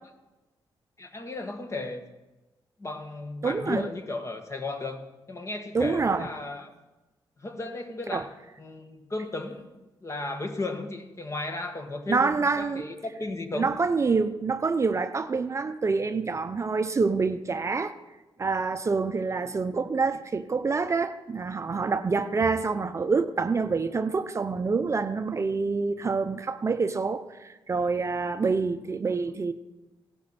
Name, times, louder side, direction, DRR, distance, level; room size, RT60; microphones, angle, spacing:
voice 1, 1.0-2.0 2.8-5.0 5.3-6.7 7.4-8.3 8.6-13.7, left 2 dB, 35° left, 1.6 m, -35 dB
voice 2, 3.4-3.8 5.7-6.3 8.1-8.2 12.1-12.9 13.5-17.9 18.4-29.5, right 4 dB, 35° right, 0.6 m, -27 dB
16.0 x 11.5 x 4.3 m
cardioid pair, 90°, 9 cm